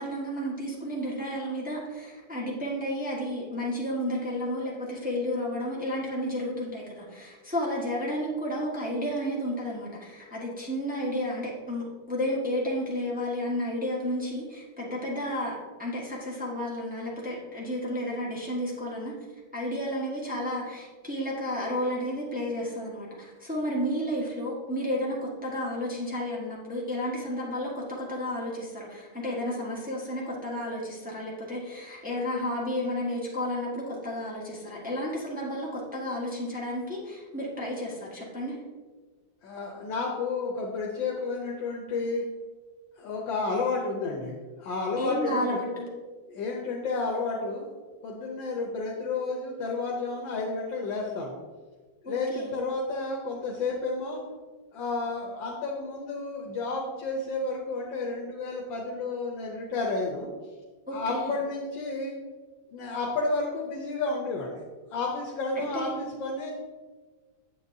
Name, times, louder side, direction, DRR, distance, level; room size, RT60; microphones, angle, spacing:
voice 1, 0.0-15.5 15.8-19.1 19.5-38.5 45.0-45.9 52.0-52.5 60.9-61.4 65.5-66.0, equal, 5° right, -5 dB, 1.3 m, -32 dB
voice 2, 39.4-42.2 43.0-45.6 46.3-47.6 48.0-51.3 52.0-54.2 54.7-60.3 60.9-62.1 62.7-64.6 64.9-66.5, left 3 dB, 85° left, -2 dB, 1.6 m, -31 dB
7.9 x 7.9 x 2.7 m, 1.4 s
omnidirectional pair, 2.0 m